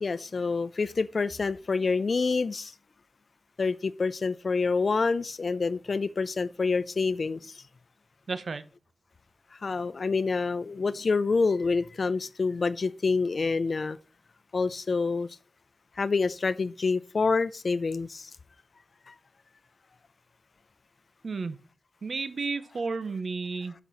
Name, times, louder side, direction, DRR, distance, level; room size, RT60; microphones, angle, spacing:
voice 1, 0.0-2.7 3.6-7.6 9.5-14.0 14.5-15.3 16.0-18.3 19.1-19.2, left 4 dB, 80° left, 0.5 m, -27 dB
voice 2, 8.3-8.7 21.2-21.6 22.0-23.7, right 4 dB, 90° right, 0.8 m, -32 dB
7.6 x 6.0 x 4.0 m
cardioid pair, 45°, 0 cm